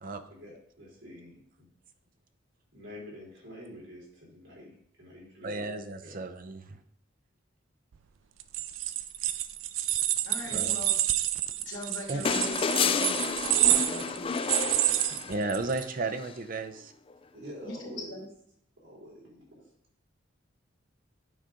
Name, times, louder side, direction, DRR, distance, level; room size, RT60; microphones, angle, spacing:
voice 1, 0.3-1.7 2.7-5.7 6.0-6.2 10.4-10.7 14.6-15.1 17.3-18.3 18.8-19.7, equal, 65° right, -4 dB, 3.6 m, -47 dB
voice 2, 5.4-6.8 10.5-10.8 12.1-12.2 15.3-16.9, right 3 dB, 50° right, 7 dB, 0.7 m, -34 dB
sound 1, 8.4-15.8, right 13 dB, 85° right, 0.4 m, -28 dB
voice 3, 10.2-10.9 11.6-14.3 17.6-18.3, left 1 dB, 75° left, -3 dB, 2.4 m, -41 dB
sound 2, 12.3-15.6 17.1-17.2, left 6 dB, 30° left, 0.3 m, -30 dB
9.4 x 5.1 x 3.8 m, 0.68 s
head